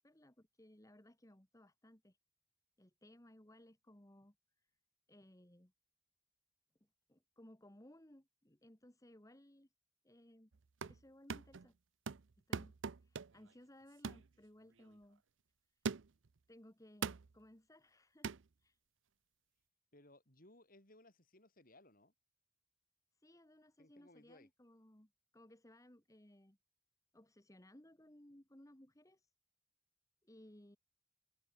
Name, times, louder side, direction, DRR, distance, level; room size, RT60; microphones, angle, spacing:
voice 1, 0.0-2.2 2.8-4.7 5.1-5.7 7.1-9.7 10.0-10.5 10.8-11.7 12.5-12.8 13.0-15.2 16.5-18.3 18.6-18.8 23.2-26.6 27.1-29.3 30.2-30.8, left 1 dB, 15° left, 1.8 m, -62 dB
sound 1, 10.5-11.0 11.3-11.7 12.1-13.5 14.0-14.3 14.8-14.9 15.9-16.3 17.0-17.3 18.2-18.4, right 5 dB, 85° right, 0.6 m, -42 dB
voice 2, 19.9-22.1 23.8-24.5, left 1 dB, 50° left, 7.0 m, -63 dB
head